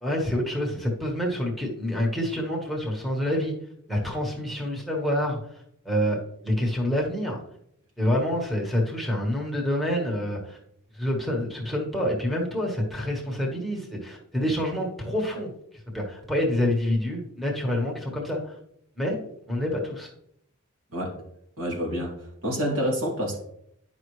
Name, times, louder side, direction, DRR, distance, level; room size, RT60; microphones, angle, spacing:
voice 1, 0.0-3.6 3.9-7.4 8.0-10.6 10.9-15.5 15.9-18.6 19.0-19.2 19.5-20.1, left 1 dB, ahead, -3 dB, 1.4 m, -27 dB
voice 2, 21.6-23.4, equal, 75° right, -1 dB, 2.8 m, -28 dB
10.5 x 5.7 x 3.2 m, 0.73 s
head